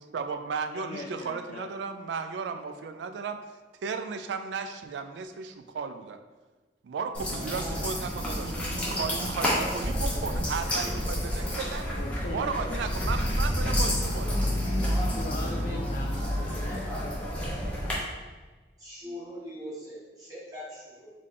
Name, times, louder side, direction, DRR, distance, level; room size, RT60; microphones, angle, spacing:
voice 1, 0.0-3.4 3.8-6.2 6.8-8.5 8.9-12.0 12.3-14.5, right 5 dB, 85° right, 8 dB, 0.3 m, -35 dB
voice 2, 0.7-1.7 12.0-12.9 15.1-16.8, left 2 dB, 45° left, 0 dB, 0.3 m, -40 dB
sound 1, 7.1-17.9, equal, 5° left, 0.9 m, -29 dB
voice 3, 18.8-21.1, equal, 20° right, -8 dB, 1.4 m, -41 dB
3.7 x 3.2 x 3.7 m, 1.3 s
head